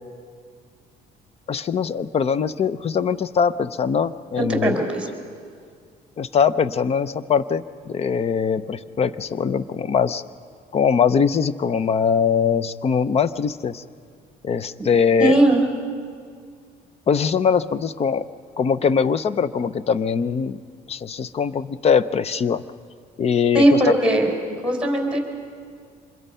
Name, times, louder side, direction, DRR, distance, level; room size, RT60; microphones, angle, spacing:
voice 1, 1.5-4.8 6.2-10.2 10.7-13.8 14.4-15.4 17.1-18.2 18.6-20.6 20.9-22.6 23.2-23.9, left 6 dB, 35° left, 15 dB, 0.7 m, -21 dB
voice 2, 4.3-5.1 15.2-15.6 23.5-24.3 24.6-25.2, right 1 dB, 5° right, 1 dB, 4.7 m, -18 dB
26.0 x 22.0 x 5.6 m, 2.1 s
cardioid pair, 110°, 17 cm